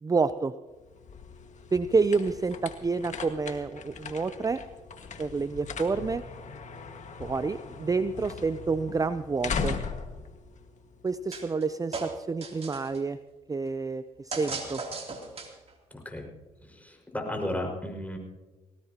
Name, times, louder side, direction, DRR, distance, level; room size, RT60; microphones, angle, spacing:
voice 1, 0.0-0.5 1.7-4.6 5.2-6.2 7.2-9.8 11.0-13.2 13.5-14.8, right 4 dB, 25° right, 13 dB, 0.6 m, -28 dB
sound 1, 0.7-11.4, left 5 dB, 50° left, 1.8 m, -39 dB
sound 2, 11.3-11.7 11.9-13.0 14.3-15.7, right 3 dB, 40° right, 3.2 m, -37 dB
voice 2, 15.9-16.3 16.7-18.2, left 1 dB, 10° left, 1 dB, 5.4 m, -34 dB
20.5 x 18.0 x 3.0 m, 1.2 s
supercardioid pair, 60°, 15 cm